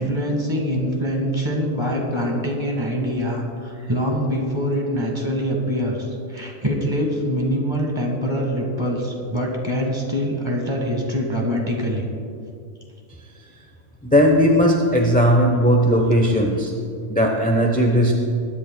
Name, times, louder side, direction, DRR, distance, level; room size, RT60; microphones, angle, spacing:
voice 1, 0.0-12.0, equal, 20° right, 0 dB, 1.7 m, -24 dB
voice 2, 14.1-16.7 17.1-18.1, equal, 10° left, 0 dB, 0.8 m, -17 dB
22.0 x 10.0 x 2.3 m, 2.3 s
omnidirectional pair, 1.3 m